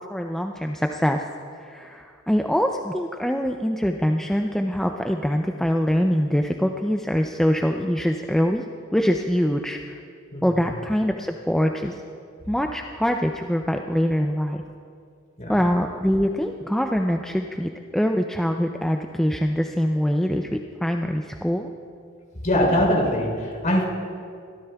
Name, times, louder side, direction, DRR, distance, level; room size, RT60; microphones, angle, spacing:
voice 1, 0.1-1.2 1.6-8.6 8.9-10.0 10.4-12.0 12.5-14.6 15.5-21.7, equal, ahead, 3 dB, 0.3 m, -24 dB
voice 2, 22.4-23.9, left 1 dB, 40° left, -2 dB, 3.6 m, -22 dB
23.5 x 13.0 x 2.3 m, 2.3 s
head